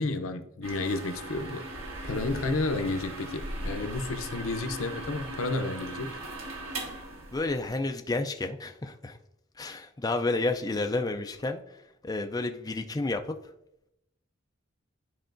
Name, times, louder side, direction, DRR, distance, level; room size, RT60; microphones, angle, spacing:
voice 1, 0.0-1.7 2.0-6.2, left 3 dB, 90° left, 0.6 m, -31 dB
sound 1, 0.6-7.8, right 1 dB, 80° right, 1.5 m, -38 dB
voice 2, 7.3-9.2 9.6-13.4, left 2 dB, 20° left, 0.4 m, -31 dB
11.0 x 4.6 x 2.6 m
head